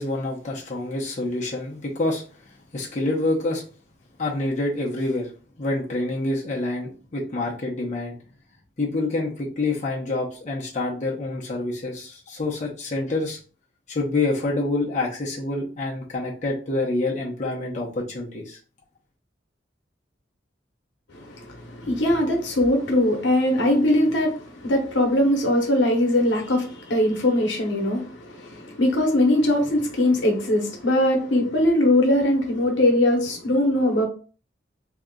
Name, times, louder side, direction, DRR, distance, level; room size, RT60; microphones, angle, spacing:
voice 1, 0.0-3.6 4.2-5.3 5.6-8.2 8.8-13.4 13.9-18.6, left 2 dB, 40° left, 0.7 m, -27 dB
voice 2, 21.1-34.1, left 1 dB, 75° left, 0.9 m, -21 dB
2.8 x 2.3 x 3.6 m
head